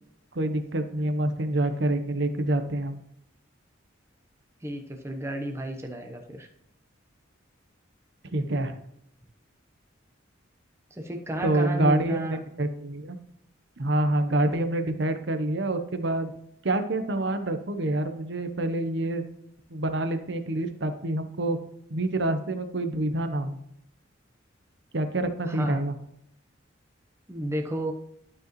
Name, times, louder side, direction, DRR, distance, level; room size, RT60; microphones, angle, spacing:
voice 1, 0.3-3.0 8.2-8.7 11.4-13.2 13.8-16.3 16.6-19.2 19.7-21.6 21.9-23.6 24.9-25.9, right 1 dB, 60° right, 8 dB, 0.8 m, -27 dB
voice 2, 4.6-6.5 10.9-12.4 25.4-25.9 27.3-27.9, equal, 15° right, 2 dB, 0.9 m, -32 dB
12.0 x 4.9 x 3.1 m, 0.75 s
head